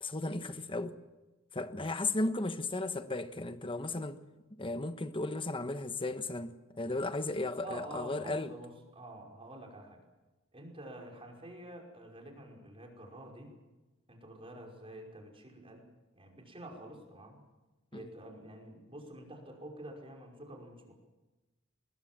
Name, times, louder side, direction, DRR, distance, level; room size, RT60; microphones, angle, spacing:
voice 1, 0.0-1.0 1.5-4.2 4.6-8.5 17.9-18.1, left 2 dB, 25° left, 1.3 m, -35 dB
voice 2, 7.6-10.0 10.5-13.5 14.1-15.9 16.1-17.4 17.9-20.9, right 1 dB, 25° right, 5.4 m, -48 dB
24.5 x 21.5 x 7.6 m
head